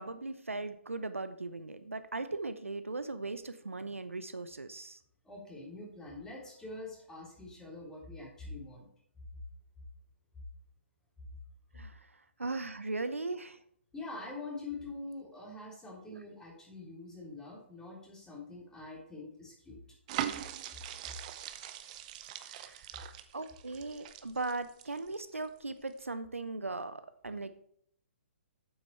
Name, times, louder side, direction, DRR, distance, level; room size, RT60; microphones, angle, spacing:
voice 1, 0.0-5.0 11.7-12.1 12.4-13.6 16.1-16.2 22.4-27.6, right 3 dB, 85° right, 11 dB, 0.8 m, -39 dB
voice 2, 5.2-8.9 13.9-19.8, left 3 dB, 10° left, -4 dB, 3.5 m, -45 dB
sound 1, 20.1-25.5 25.9-26.0, right 11 dB, 35° right, 0.8 m, -41 dB
9.0 x 8.1 x 4.3 m, 0.67 s
figure-of-eight pair, 135°, 7 cm